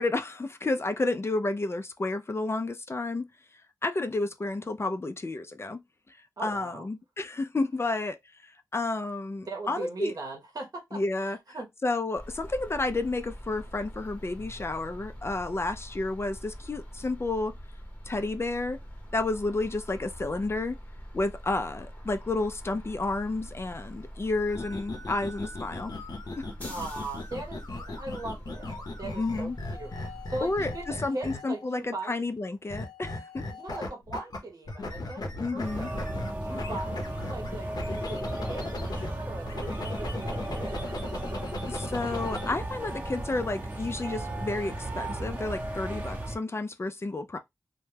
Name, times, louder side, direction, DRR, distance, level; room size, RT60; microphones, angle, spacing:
voice 1, 0.0-3.3 3.8-5.8 6.1-6.2 6.4-8.2 8.4-10.1 10.9-11.4 11.8-17.5 18.1-18.8 19.1-20.8 21.1-25.9 26.4-26.7 29.2-29.6 30.4-30.7 31.0-33.4 35.4-35.9 41.7-47.4, left 2 dB, 40° left, 0.4 m, -31 dB
voice 2, 6.4-6.9 9.5-11.7 26.7-32.1 33.4-36.0 36.4-41.5, right 2 dB, 60° right, 0.8 m, -40 dB
sound 1, 12.1-30.9, equal, 20° left, 0.9 m, -44 dB
sound 2, 24.5-31.7 32.7-34.4 34.7-39.1 39.5-42.5, left 2 dB, 70° left, 0.7 m, -38 dB
sound 3, 35.6-46.4, right 1 dB, 25° right, 0.7 m, -35 dB
2.2 x 2.1 x 3.2 m
cardioid pair, 50°, 7 cm